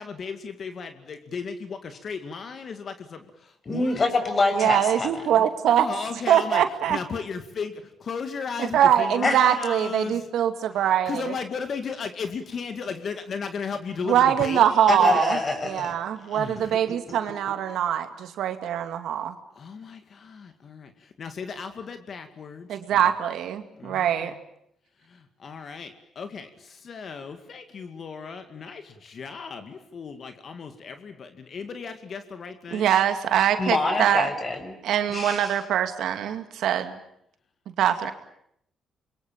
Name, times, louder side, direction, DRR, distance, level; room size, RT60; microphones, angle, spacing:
voice 1, 0.0-4.0 5.7-10.3 10.7-15.2 16.2-16.7 19.5-23.1 23.7-24.4 25.0-32.9, left 5 dB, 50° left, 8 dB, 2.2 m, -36 dB
voice 2, 3.7-5.4 9.2-9.4 14.9-15.9 16.7-16.9 33.6-34.8 35.1-35.6, left 3 dB, 35° left, 8 dB, 6.4 m, -25 dB
voice 3, 4.6-5.9 6.3-7.0 8.7-11.1 14.1-15.4 15.6-19.3 22.7-24.3 32.7-34.3 34.8-36.9 37.8-38.1, right 10 dB, 75° right, 8 dB, 2.3 m, -23 dB
26.5 x 22.5 x 8.7 m, 0.74 s
cardioid pair, 90°, 0 cm